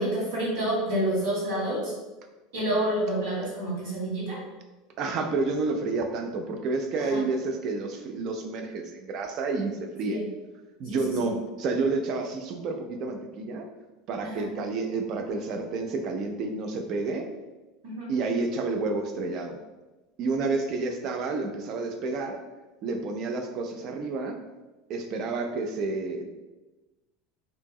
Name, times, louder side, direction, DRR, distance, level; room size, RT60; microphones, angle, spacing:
voice 1, 0.0-1.9 2.5-4.4 7.1-7.2 10.1-10.2 14.3-14.5 17.8-18.1, right 1 dB, 75° right, -10 dB, 1.0 m, -28 dB
voice 2, 5.0-10.2 10.8-13.7 14.1-17.3 18.1-19.6 20.2-22.4 22.8-24.4 24.9-26.3, right 3 dB, 50° right, 4 dB, 0.4 m, -30 dB
2.8 x 2.6 x 2.3 m, 1.1 s
hypercardioid pair, 80°, 0 cm